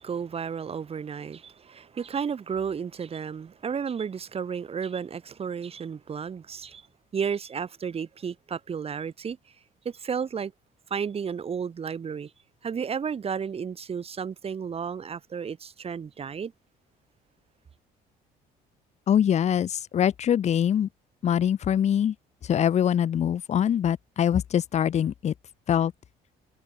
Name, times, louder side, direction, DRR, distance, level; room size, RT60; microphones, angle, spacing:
voice 1, 0.0-6.8 7.1-9.4 9.8-10.5 10.9-12.3 12.6-16.5, right 6 dB, 35° right, 2.4 m, -32 dB
voice 2, 19.1-20.9 21.2-22.1 22.5-25.3 25.7-25.9, left 9 dB, 40° left, 0.7 m, -23 dB
cardioid pair, 110°, 17 cm